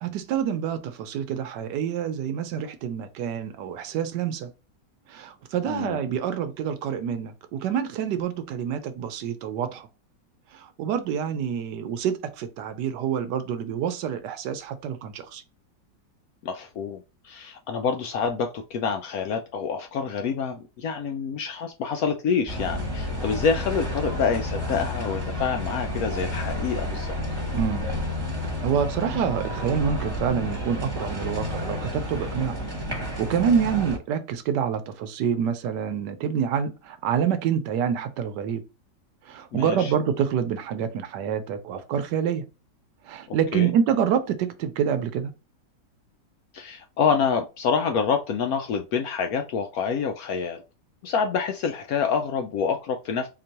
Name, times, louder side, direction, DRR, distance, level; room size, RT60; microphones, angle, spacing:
voice 1, 0.0-4.5 5.1-9.9 10.5-15.4 27.5-27.9 28.6-32.6 33.0-38.6 39.3-42.4 43.1-45.3, right 8 dB, 75° right, 1.2 m, -27 dB
voice 2, 5.6-6.0 16.4-27.2 39.5-39.9 43.5-43.7 46.5-50.6 51.0-53.3, left 6 dB, 70° left, 0.9 m, -27 dB
sound 1, 22.5-34.0, left 1 dB, 15° right, 1.1 m, -30 dB
3.9 x 3.0 x 2.7 m
omnidirectional pair, 1.9 m